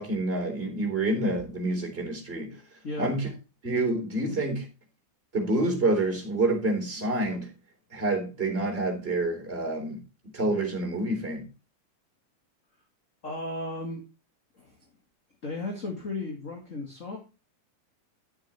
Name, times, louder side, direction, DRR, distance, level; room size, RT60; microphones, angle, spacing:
voice 1, 0.0-2.5 3.0-3.3 3.6-4.7 5.3-7.5 7.9-10.0 10.3-11.5, right 2 dB, 15° right, 3.9 m, -27 dB
voice 2, 13.2-14.0 14.6-14.8 15.4-17.2, left 2 dB, 25° left, 2.0 m, -35 dB
12.5 x 7.2 x 4.4 m
omnidirectional pair, 3.9 m